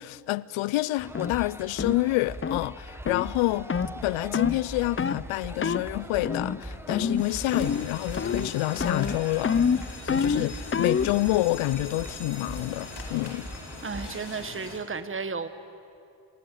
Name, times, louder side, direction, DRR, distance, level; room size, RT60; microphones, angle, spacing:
voice 1, 0.0-13.5, left 18 dB, 85° left, 0.6 m, -28 dB
sound 1, 1.0-14.1, right 1 dB, 5° right, 1.5 m, -41 dB
sound 2, 1.1-1.3 1.8-2.0 2.4-2.6 3.1-3.3 3.7-3.9 4.3-4.6 5.0-5.2 5.6-5.9 6.2-6.6 6.9-7.3 7.5-7.9 8.2-8.5 8.8-11.1, left 6 dB, 25° left, 0.7 m, -27 dB
sound 3, 7.2-14.8, left 4 dB, 55° left, 4.5 m, -42 dB
voice 2, 13.8-15.5, right 4 dB, 25° right, 1.5 m, -33 dB
28.5 x 21.0 x 9.3 m
cardioid pair, 80°, 47 cm